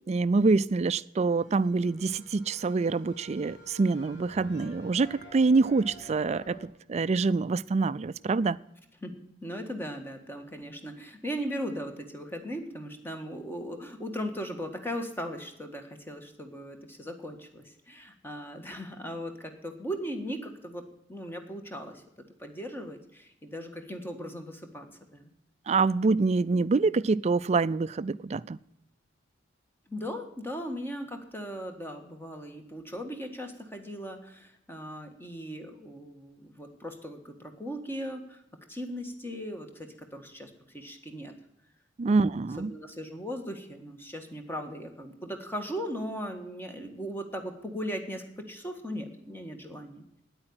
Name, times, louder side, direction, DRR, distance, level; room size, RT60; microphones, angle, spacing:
voice 1, 0.1-8.6 25.7-28.6 42.0-42.7, right 3 dB, 35° right, 0.4 m, -26 dB
sound 1, 1.2-6.7, equal, 70° left, 3.8 m, -50 dB
voice 2, 9.4-22.0 22.4-25.3 29.9-38.4 38.7-41.3 42.1-50.0, equal, 10° left, 1.7 m, -38 dB
9.8 x 8.8 x 8.8 m
head